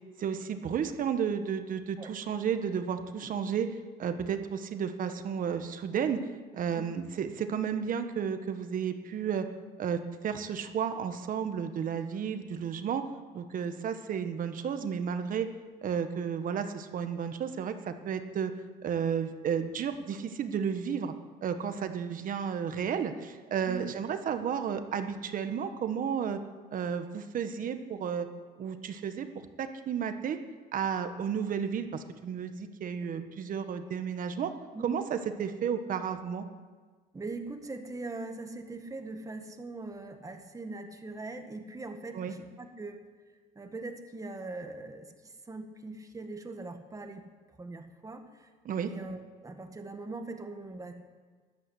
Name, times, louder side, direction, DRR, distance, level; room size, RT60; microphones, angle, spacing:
voice 1, 0.2-3.7 4.0-6.3 6.5-9.5 9.8-13.1 13.3-15.5 15.8-18.5 18.8-21.1 21.4-26.4 26.7-28.3 28.6-29.3 29.6-30.4 30.7-34.5 34.8-36.4 42.1-42.3 48.6-48.9, right 7 dB, 55° right, 8 dB, 1.4 m, -32 dB
voice 2, 37.1-43.0 43.6-50.9, right 3 dB, 20° right, 6 dB, 1.8 m, -41 dB
14.0 x 11.5 x 8.2 m, 1.4 s
cardioid pair, 110°, 17 cm